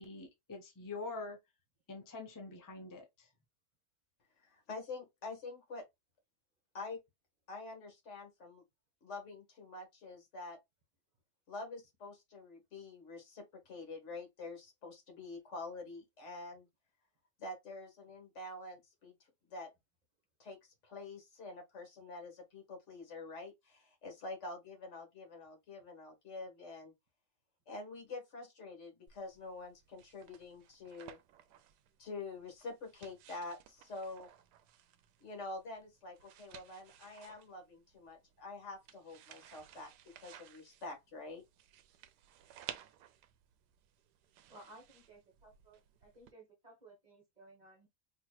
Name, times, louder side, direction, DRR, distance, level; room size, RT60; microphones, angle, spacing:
voice 1, 0.0-1.4 1.9-3.3, left 3 dB, 35° left, 0.3 m, -45 dB
voice 2, 4.4-5.9 6.7-7.0 7.5-8.6 9.0-10.6 11.5-16.7 17.4-19.1 19.5-19.7 20.4-26.9 27.7-31.2 32.0-34.3 35.2-41.4, left 3 dB, 50° left, 1.6 m, -47 dB
sound 1, 29.1-46.3, right 11 dB, 90° right, 1.2 m, -56 dB
voice 3, 44.5-47.9, right 2 dB, 30° right, 1.1 m, -58 dB
4.4 x 2.9 x 2.2 m
omnidirectional pair, 1.7 m